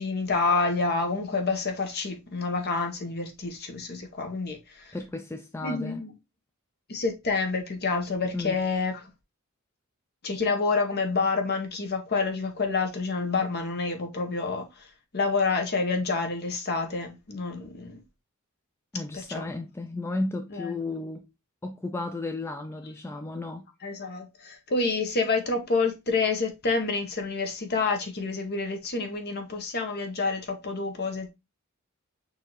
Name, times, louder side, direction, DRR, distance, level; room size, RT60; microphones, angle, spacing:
voice 1, 0.0-5.0 5.6-6.1 6.9-9.1 10.2-14.9 15.1-18.0 19.1-19.4 20.5-20.7 23.8-31.3, left 4 dB, 50° left, 1.0 m, -28 dB
voice 2, 4.9-6.0 8.3-8.6 18.9-21.3 21.6-23.6, left 2 dB, 10° left, 0.4 m, -33 dB
6.4 x 2.7 x 3.0 m
head